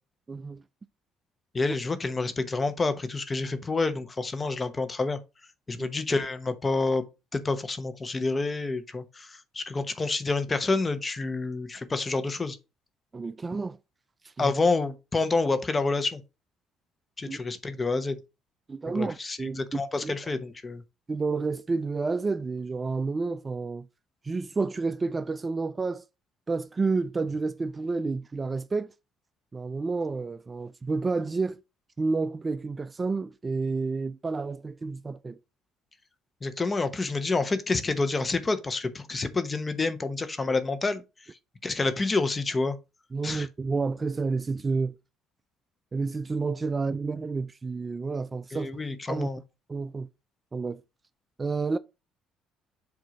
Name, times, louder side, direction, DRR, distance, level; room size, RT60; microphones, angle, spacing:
voice 1, 0.3-0.6 5.8-5.9 13.1-13.8 14.2-14.5 17.2-17.4 18.7-19.6 20.0-20.1 21.1-23.9 24.2-26.0 26.5-28.9 29.5-31.6 32.0-35.4 43.1-44.9 45.9-48.7 49.1-49.3 49.7-50.1 50.5-50.8 51.4-51.8, right 4 dB, 25° right, 0.3 m, -30 dB
voice 2, 1.5-5.2 5.7-7.0 7.3-12.6 14.4-16.2 17.2-18.2 18.9-20.8 36.4-41.0 41.6-42.8 43.2-43.5 48.5-49.4, left 3 dB, 25° left, 1.0 m, -28 dB
7.7 x 2.7 x 5.1 m
cardioid pair, 90°, 0 cm